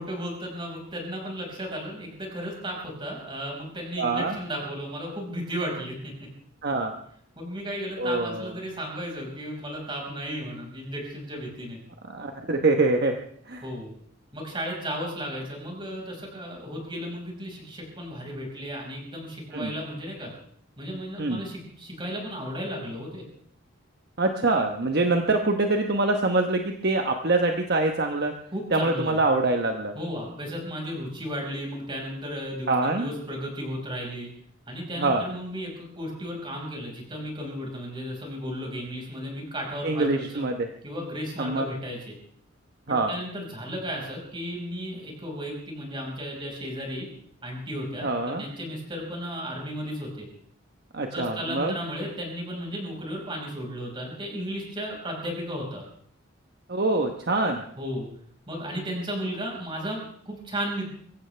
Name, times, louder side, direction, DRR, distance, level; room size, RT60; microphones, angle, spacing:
voice 1, 0.0-6.1 7.4-11.8 13.6-13.9 14.3-20.3 20.8-23.2 28.5-29.2 29.9-34.3 34.7-40.4 40.8-42.2 42.9-47.1 47.4-50.3 51.1-55.8 57.8-58.1 58.5-60.9, equal, 25° right, 0 dB, 5.3 m, -34 dB
voice 2, 4.0-4.4 6.6-6.9 8.0-8.5 12.1-13.1 13.5-13.7 19.5-19.7 21.2-21.4 24.2-28.3 28.7-30.0 32.7-33.1 34.9-35.2 39.8-40.7 41.4-41.7 42.9-43.1 48.0-48.4 50.9-51.7 56.7-57.6, right 2 dB, 55° right, 4 dB, 1.1 m, -24 dB
23.0 x 16.0 x 3.4 m, 0.62 s
head